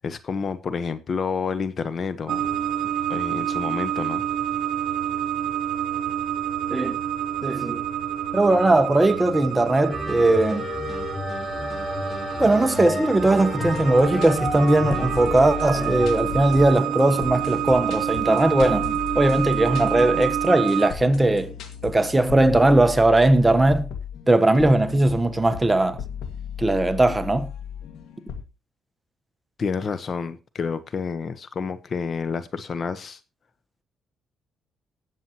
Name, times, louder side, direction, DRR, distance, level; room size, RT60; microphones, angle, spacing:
voice 1, 0.0-2.7 3.1-4.2 29.6-33.2, left 5 dB, 45° left, 1.1 m, -29 dB
sound 1, 2.3-20.9, right 10 dB, 70° right, 1.0 m, -28 dB
voice 2, 7.4-7.8 8.3-10.7 12.4-21.5 21.8-23.9 24.3-26.0 26.6-27.5, right 2 dB, 15° right, 1.1 m, -19 dB
sound 2, 9.9-16.1, left 1 dB, 20° left, 3.7 m, -31 dB
sound 3, 13.6-28.4, left 8 dB, 85° left, 1.9 m, -36 dB
18.5 x 7.7 x 3.0 m
cardioid pair, 90°, 0 cm